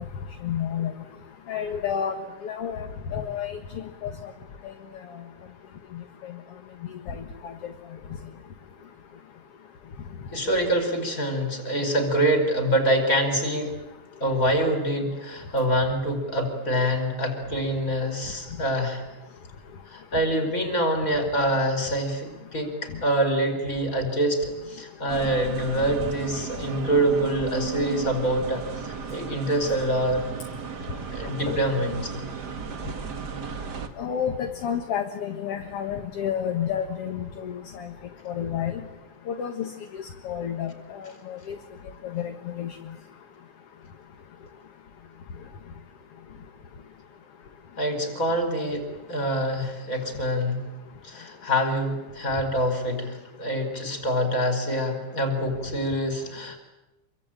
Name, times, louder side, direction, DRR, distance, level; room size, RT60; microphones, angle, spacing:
voice 1, 0.4-0.9 1.5-2.1 2.4-2.9 3.1-3.6 4.0-4.1 4.6-4.7 7.1-7.5 31.5-31.6 34.0-37.9 38.3-38.7 39.3-39.7 40.2-40.7 41.0-41.6 42.1-42.7, left 8 dB, 55° left, 5 dB, 2.1 m, -30 dB
voice 2, 10.3-13.8 14.2-19.0 19.9-30.2 31.1-32.2 47.8-50.6 51.0-56.6, right 1 dB, 25° left, 7 dB, 4.9 m, -25 dB
sound 1, 25.1-33.9, right 6 dB, 40° right, 1.7 m, -35 dB
27.5 x 23.5 x 8.9 m, 1.0 s
omnidirectional pair, 3.8 m